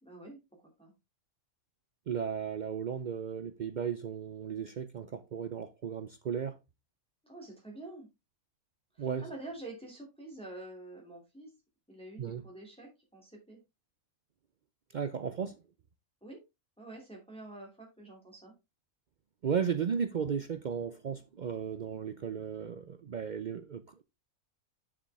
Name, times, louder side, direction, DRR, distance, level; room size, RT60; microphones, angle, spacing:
voice 1, 0.0-0.9 7.2-8.1 8.9-11.5 11.9-13.6 16.2-16.4 16.8-18.5, right 2 dB, 5° left, 2.6 m, -47 dB
voice 2, 2.1-6.6 9.0-9.3 12.2-12.4 14.9-15.6 19.4-24.0, right 7 dB, 75° right, 0.4 m, -35 dB
7.2 x 6.8 x 3.4 m
omnidirectional pair, 1.5 m